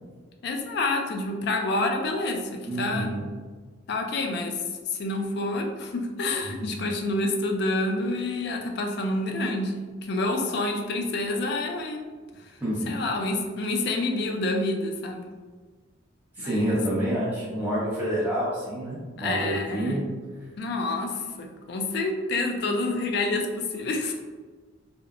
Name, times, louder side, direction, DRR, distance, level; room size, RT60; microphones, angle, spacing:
voice 1, 0.4-3.1 3.9-4.6 4.9-9.7 10.0-12.0 12.4-12.5 12.9-15.2 16.4-16.8 19.2-20.0 20.6-24.1, left 2 dB, 50° left, 3 dB, 0.3 m, -28 dB
voice 2, 2.6-3.2 6.6-6.7 12.6-12.9 16.4-20.1, equal, 10° right, -9 dB, 0.8 m, -28 dB
2.8 x 2.0 x 2.4 m, 1.4 s
head